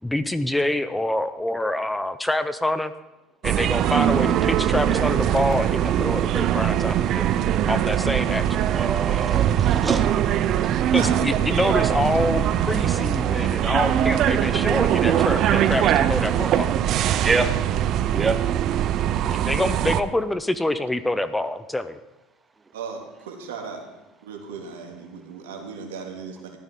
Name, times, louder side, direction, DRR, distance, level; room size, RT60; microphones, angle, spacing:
voice 1, 0.0-2.9 3.4-7.4 7.7-8.5 10.9-16.8 19.3-22.0, left 1 dB, 10° left, 12 dB, 0.7 m, -26 dB
sound 1, 3.4-20.0, right 11 dB, 55° right, 0.7 m, -22 dB
voice 2, 8.7-10.5 15.0-15.1 15.5-17.6 18.0-18.4, right 3 dB, 20° right, 8 dB, 1.0 m, -28 dB
voice 3, 10.9-11.2 22.7-23.8 24.2-26.6, right 5 dB, 85° right, 2 dB, 2.3 m, -36 dB
15.0 x 12.0 x 3.8 m, 1.0 s
hypercardioid pair, 80°, 0 cm